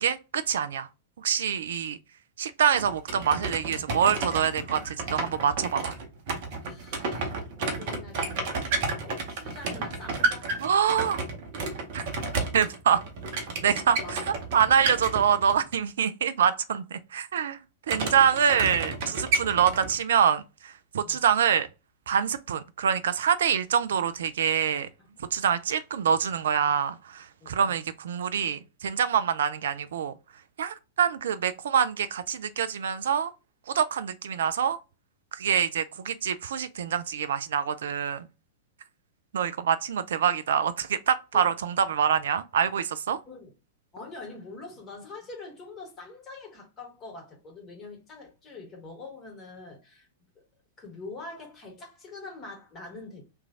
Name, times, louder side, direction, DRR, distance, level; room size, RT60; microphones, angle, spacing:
voice 1, 0.0-0.9 1.2-2.0 2.4-6.0 10.6-11.2 11.9-12.0 12.5-13.0 13.6-14.2 14.5-17.6 17.9-21.7 22.1-24.9 25.3-30.1 30.6-33.3 33.7-34.8 35.3-38.3 39.3-43.2, right 8 dB, 65° right, 0.3 m, -25 dB
sound 1, 2.7-15.8 17.9-20.0, right 3 dB, 50° right, 0.8 m, -32 dB
voice 2, 6.6-7.3 7.6-8.6 9.0-10.6 14.0-14.3 21.0-21.2 25.0-25.4 27.4-27.8 41.3-41.5 43.3-43.5 43.9-50.1 50.8-53.2, left 3 dB, 25° left, 1.6 m, -44 dB
3.1 x 2.3 x 3.7 m
figure-of-eight pair, 100°, 0 cm